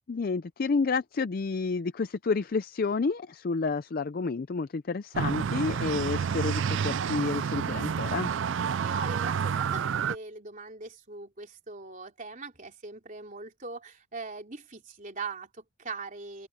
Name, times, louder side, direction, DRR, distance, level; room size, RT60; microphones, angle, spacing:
voice 1, 0.1-8.3, left 4 dB, 45° left, 0.4 m, -30 dB
sound 1, 5.1-10.1, right 7 dB, 60° right, 0.4 m, -29 dB
voice 2, 8.8-16.5, right 4 dB, 40° right, 3.7 m, -41 dB
open air
head